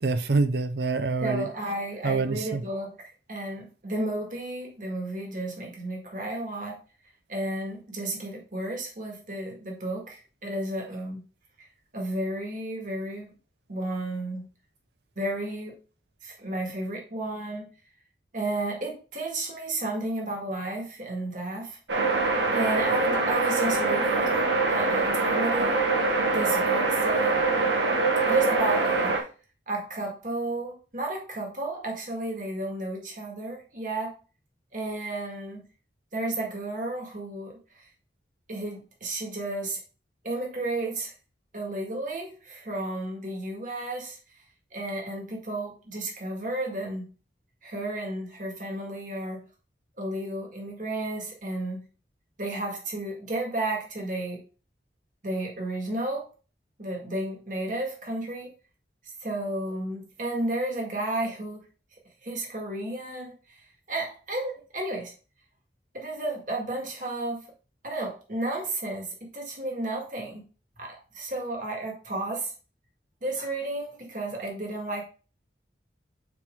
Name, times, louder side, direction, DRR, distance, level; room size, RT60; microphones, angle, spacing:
voice 1, 0.0-1.5 2.0-2.6, right 3 dB, 65° right, 0.6 m, -26 dB
voice 2, 1.2-6.8 7.3-11.2 11.6-11.7 11.9-13.3 13.7-14.5 15.2-15.8 16.2-17.7 18.3-21.8 22.5-24.4 24.7-27.7 28.3-29.1 29.7-34.2 34.7-35.6 36.1-37.9 38.5-39.8 40.2-41.1 41.5-44.2 44.7-47.1 47.6-49.5 50.0-51.9 52.4-54.4 55.2-56.3 56.8-58.5 59.2-61.6 62.2-63.6 63.9-65.1 65.9-67.4 67.8-70.4 70.8-72.5 73.2-75.0, right 2 dB, 45° right, 1.8 m, -32 dB
sound 1, 21.9-29.2, right 3 dB, 90° right, 1.3 m, -24 dB
6.0 x 4.4 x 3.6 m
head